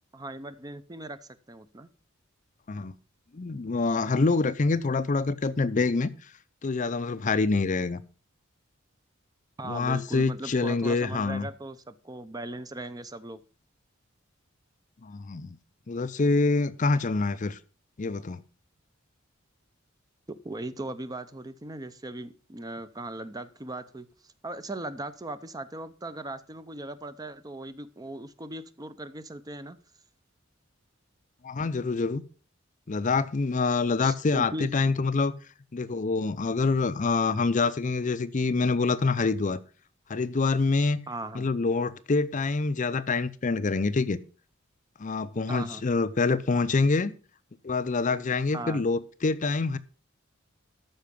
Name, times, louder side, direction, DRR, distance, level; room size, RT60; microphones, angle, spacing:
voice 1, 0.1-1.2 1.5-1.9 9.6-13.4 20.3-29.8 34.0-34.9 41.1-41.5 45.5-45.8 48.5-48.8, right 2 dB, 20° right, 12 dB, 0.6 m, -38 dB
voice 2, 3.3-6.1 6.6-8.0 9.6-11.5 15.0-15.6 15.9-17.6 18.0-18.4 31.4-32.2 32.9-35.3 35.7-39.6 40.1-41.0 41.3-44.2 45.0-47.1 47.6-49.8, left 3 dB, 40° left, 14 dB, 0.5 m, -26 dB
13.5 x 5.6 x 5.2 m, 0.37 s
head